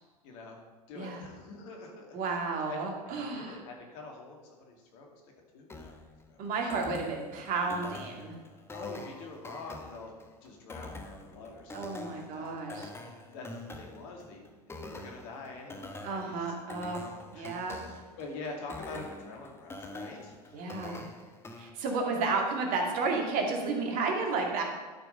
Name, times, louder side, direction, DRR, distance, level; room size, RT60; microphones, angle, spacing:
voice 1, 0.2-0.6 0.9-2.2 2.7-5.9 6.3-6.4 8.7-10.1 10.4-13.5 13.7-20.6, left 3 dB, 50° left, 1 dB, 2.5 m, -46 dB
voice 2, 2.1-3.6 6.4-8.4 11.7-12.9 16.0-17.0 17.3-17.8 20.5-21.1 21.5-24.6, right 4 dB, 40° right, 1 dB, 2.2 m, -32 dB
sound 1, 5.7-21.7, left 2 dB, 10° left, 1.2 m, -45 dB
12.0 x 5.9 x 5.4 m, 1.4 s
hypercardioid pair, 95°, 21 cm